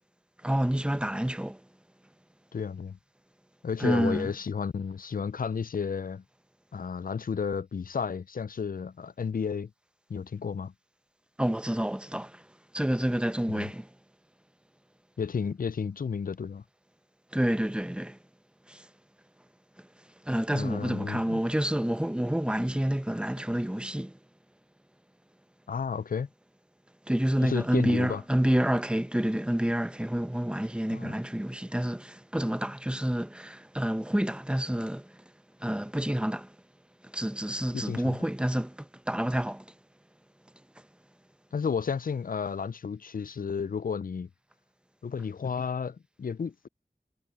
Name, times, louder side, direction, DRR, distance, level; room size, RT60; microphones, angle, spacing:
voice 1, 0.4-1.6 3.8-4.3 11.4-12.4 12.7-13.9 17.3-18.2 18.7-18.9 19.8-19.9 20.2-24.2 27.1-35.2 35.6-36.5 37.0-39.7, right 1 dB, 5° right, 0.9 m, -28 dB
voice 2, 2.5-3.0 3.6-6.2 6.7-9.7 10.1-10.7 13.5-13.7 15.2-16.6 20.5-21.4 25.7-26.3 27.4-28.2 30.9-31.2 37.7-38.2 41.5-44.3 45.0-46.7, left 6 dB, 55° left, 0.4 m, -32 dB
wide cardioid pair, 40°, 17 cm